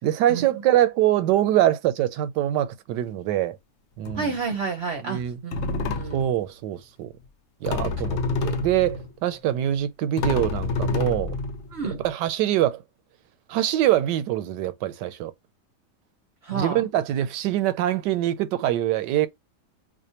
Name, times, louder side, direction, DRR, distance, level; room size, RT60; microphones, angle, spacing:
voice 1, 0.0-3.6 4.0-4.3 5.0-5.4 6.1-7.1 7.6-11.4 11.8-12.8 13.5-15.3 16.5-19.3, right 12 dB, 75° right, 1.2 m, -24 dB
sound 1, 2.9-3.1 4.0-4.5 5.2-5.3 5.5-6.4 7.6-9.1 9.7-9.8 10.2-12.0, left 3 dB, 70° left, 0.6 m, -28 dB
voice 2, 4.2-6.3 11.7-12.0 16.4-16.8, right 5 dB, 50° right, 0.8 m, -30 dB
4.9 x 2.1 x 2.7 m
omnidirectional pair, 1.9 m